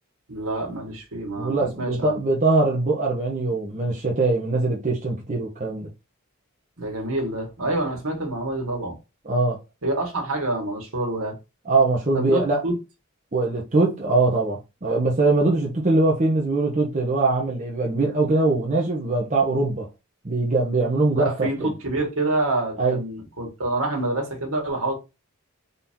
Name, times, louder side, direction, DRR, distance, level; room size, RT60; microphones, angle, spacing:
voice 1, 0.3-2.2 6.8-8.9 9.8-11.4 12.1-12.7 21.2-24.9, right 2 dB, 70° right, 1.7 m, -27 dB
voice 2, 1.4-5.9 9.2-9.6 11.7-12.6 13.3-19.9 20.2-21.7 22.8-23.0, right 2 dB, 35° right, 0.9 m, -22 dB
4.0 x 2.8 x 3.6 m
head